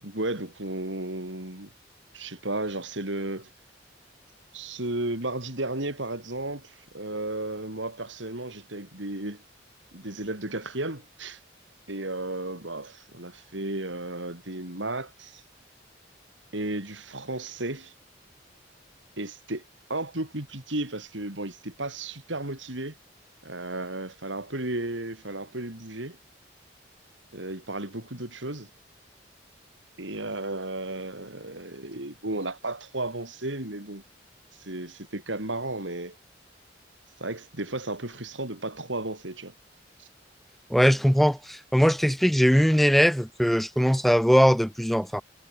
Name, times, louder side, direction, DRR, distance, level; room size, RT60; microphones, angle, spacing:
voice 1, 0.0-1.7 2.1-3.5 4.5-9.4 9.9-11.4 11.9-15.4 16.5-17.9 19.2-19.6 19.9-23.0 23.4-26.2 27.3-28.7 30.0-34.0 34.6-36.1 37.2-39.5 40.0-40.1, right 2 dB, 90° right, 4.7 m, -34 dB
voice 2, 40.7-45.2, equal, ahead, 3.1 m, -21 dB
head